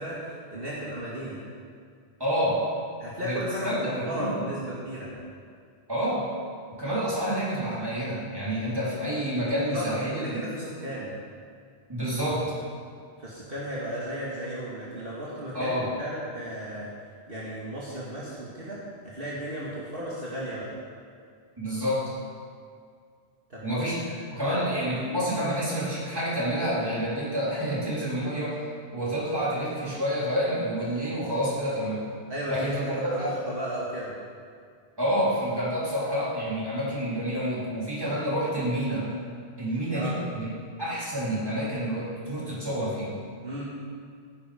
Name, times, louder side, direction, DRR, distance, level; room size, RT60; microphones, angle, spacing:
voice 1, 0.0-1.4 3.0-5.1 9.7-11.1 13.2-16.9 17.3-20.7 23.5-24.6 32.3-32.7 33.1-34.1 39.9-40.1 43.4-43.6, right 1 dB, 55° right, -7 dB, 2.4 m, -35 dB
voice 2, 2.2-2.7 3.2-4.4 5.9-6.3 6.8-10.4 11.9-12.4 15.5-15.9 21.6-22.1 23.6-24.0 24.3-28.6 28.9-32.1 32.5-33.3 35.0-39.1 39.6-40.5 40.8-43.2, equal, 20° right, -8 dB, 4.1 m, -28 dB
17.0 x 10.0 x 5.2 m, 2.2 s
omnidirectional pair, 1.2 m